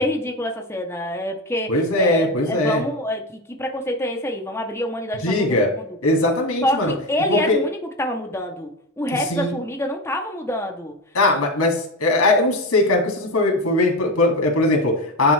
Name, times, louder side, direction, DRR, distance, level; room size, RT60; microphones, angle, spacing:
voice 1, 0.0-5.9 6.6-8.7 9.0-10.9, left 1 dB, 10° left, 2 dB, 0.6 m, -26 dB
voice 2, 1.7-2.8 5.2-5.7 6.0-6.9 7.3-7.6 9.3-9.5 11.1-15.3, left 2 dB, 85° left, 1 dB, 2.1 m, -20 dB
10.0 x 3.7 x 3.2 m, 0.72 s
head